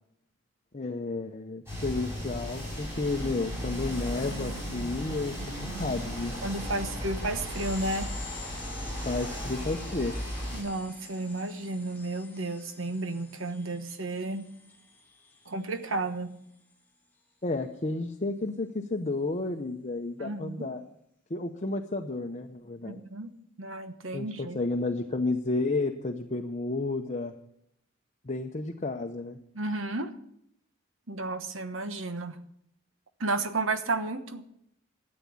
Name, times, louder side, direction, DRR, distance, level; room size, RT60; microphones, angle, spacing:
voice 1, 0.7-5.3 5.8-6.3 9.1-10.2 17.4-20.8 21.3-23.0 24.1-27.3 28.2-29.4, left 3 dB, 35° left, 3 dB, 0.8 m, -31 dB
sound 1, 1.7-10.6, equal, 15° right, 6.6 m, -36 dB
voice 2, 6.4-8.1 10.5-14.5 15.5-16.3 20.2-20.7 22.8-24.6 29.5-30.1 31.1-32.4 33.2-34.4, right 2 dB, 75° right, 9 dB, 1.2 m, -32 dB
sound 2, 6.9-17.1, left 4 dB, 10° left, 1.7 m, -49 dB
13.0 x 8.6 x 8.6 m, 0.74 s
head